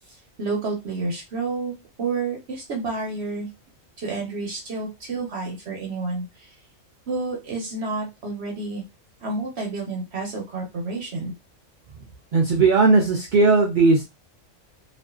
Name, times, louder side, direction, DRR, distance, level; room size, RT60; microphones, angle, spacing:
voice 1, 0.4-3.5 4.0-6.5 7.1-8.8 9.2-11.3, right 3 dB, 60° right, -1 dB, 0.9 m, -30 dB
voice 2, 12.3-14.0, right 3 dB, 80° right, 1 dB, 0.4 m, -17 dB
2.4 x 2.4 x 2.3 m, 0.24 s
omnidirectional pair, 1.4 m